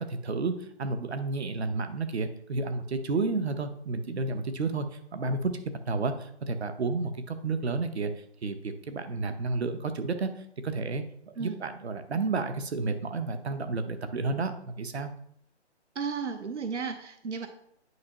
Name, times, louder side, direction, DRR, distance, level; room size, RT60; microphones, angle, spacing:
voice 1, 0.0-5.5 5.9-8.1 8.4-11.0 11.4-15.1, right 3 dB, 70° right, 9 dB, 1.0 m, -31 dB
voice 2, 15.9-17.5, right 5 dB, 85° right, 8 dB, 0.9 m, -34 dB
9.5 x 5.3 x 3.0 m, 0.68 s
hypercardioid pair, 170°, 34 cm